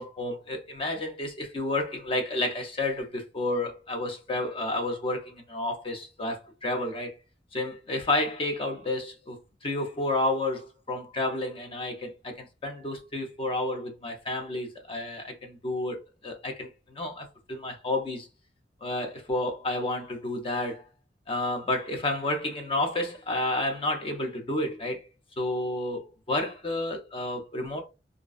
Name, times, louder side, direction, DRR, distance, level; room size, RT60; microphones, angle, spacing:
voice 1, 0.0-7.1 7.5-18.3 18.8-20.9 21.3-25.0 25.4-27.8, left 2 dB, 30° left, 0.5 m, -31 dB
2.4 x 2.1 x 2.3 m
head